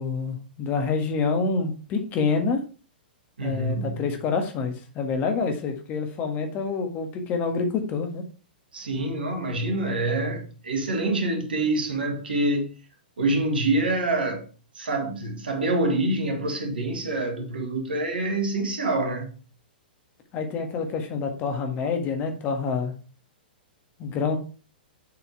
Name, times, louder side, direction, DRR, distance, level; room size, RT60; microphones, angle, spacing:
voice 1, 0.0-2.6 3.4-8.2 20.3-22.9 24.0-24.4, left 4 dB, 30° left, 1.6 m, -27 dB
voice 2, 3.4-4.0 8.7-12.7 13.2-14.5 14.8-19.3, right 2 dB, 75° right, 2.2 m, -26 dB
7.1 x 4.6 x 4.7 m
figure-of-eight pair, 110°, 5 cm